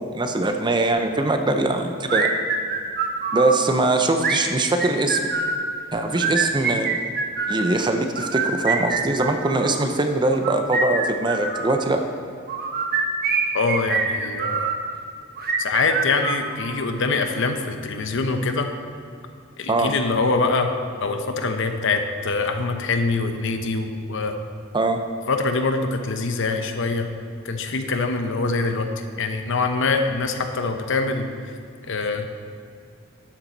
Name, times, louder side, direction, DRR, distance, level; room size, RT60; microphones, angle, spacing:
voice 1, 0.0-2.3 3.3-5.3 5.9-6.9 7.5-12.0 19.7-19.9 24.7-25.0, right 2 dB, 25° right, 6 dB, 0.6 m, -22 dB
sound 1, 2.1-3.6 4.2-5.6 6.1-7.7 8.2-9.7 10.3-11.8 12.5-14.8 15.4-16.8, right 4 dB, 50° right, 1.0 m, -25 dB
voice 2, 13.5-14.7 15.6-18.7 19.6-20.7 21.0-24.4 25.3-27.1 27.4-28.9 29.2-31.5 31.9-32.3, left 3 dB, 65° left, 6 dB, 0.8 m, -24 dB
12.0 x 7.4 x 4.0 m, 2.4 s
head